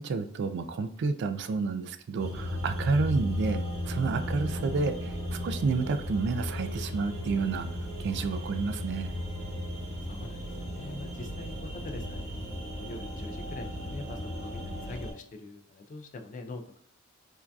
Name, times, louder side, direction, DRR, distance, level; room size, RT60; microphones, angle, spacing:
voice 1, 0.0-7.7 8.0-9.1, right 4 dB, 55° right, 9 dB, 0.3 m, -30 dB
sound 1, 2.2-15.1, equal, 10° right, 1.2 m, -35 dB
voice 2, 10.1-16.8, left 2 dB, 35° left, 6 dB, 0.4 m, -44 dB
4.5 x 2.6 x 2.3 m, 0.67 s
head